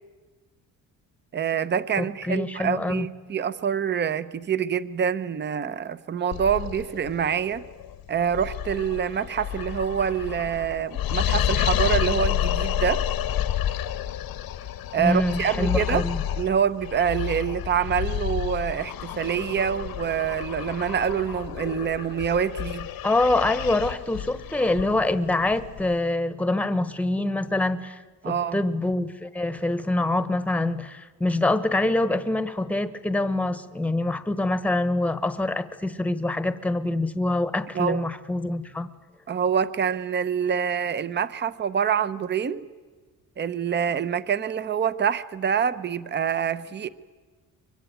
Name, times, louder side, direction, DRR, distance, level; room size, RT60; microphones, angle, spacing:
voice 1, 1.3-7.6 8.1-13.0 14.9-16.0 16.4-22.9 28.2-28.6 37.7-38.0 39.3-42.7 43.4-46.9, right 8 dB, 30° right, 15 dB, 0.8 m, -26 dB
voice 2, 2.0-3.1 15.0-16.2 23.0-38.9, left 2 dB, 5° left, 12 dB, 1.1 m, -25 dB
sound 1, 6.3-26.0, left 11 dB, 90° left, 1.4 m, -30 dB
24.5 x 23.0 x 9.4 m, 1.4 s
cardioid pair, 145°, 35 cm